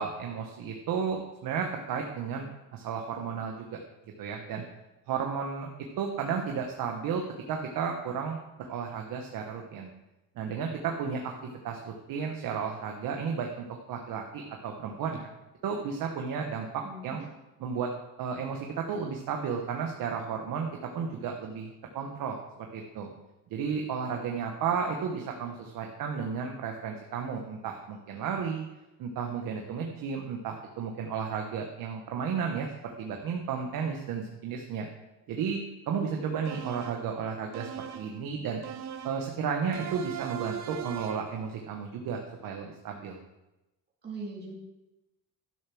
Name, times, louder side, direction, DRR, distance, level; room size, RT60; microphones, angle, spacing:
voice 1, 0.0-3.8 4.2-4.6 5.1-5.7 6.0-9.9 10.3-11.3 11.6-15.2 15.6-17.2 17.6-17.9 18.2-20.7 20.9-23.1 23.5-28.6 29.0-32.7 33.0-34.9 35.3-35.6 35.9-37.7 37.9-38.6 39.0-43.2, right 6 dB, 70° right, 2 dB, 1.4 m, -33 dB
voice 2, 16.8-17.2 44.0-44.5, right 3 dB, 30° right, -3 dB, 2.5 m, -40 dB
sound 1, 36.4-37.1 37.5-38.2 38.6-39.3 39.7-41.4, right 10 dB, 50° right, 0.8 m, -39 dB
12.0 x 6.9 x 6.2 m, 0.97 s
cardioid pair, 150°, 35 cm